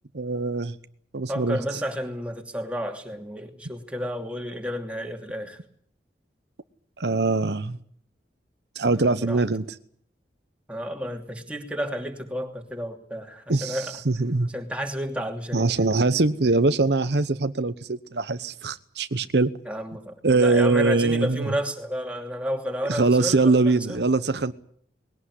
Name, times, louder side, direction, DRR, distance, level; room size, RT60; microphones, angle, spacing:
voice 1, 0.1-0.8 1.1-1.6 7.0-7.8 8.8-9.6 13.5-14.5 15.5-19.5 20.2-21.5 22.9-24.5, right 3 dB, 70° right, 0.9 m, -22 dB
voice 2, 1.3-5.6 8.9-9.4 10.7-14.0 14.5-15.7 19.6-24.3, equal, 5° right, 2.7 m, -31 dB
20.5 x 17.5 x 9.9 m
head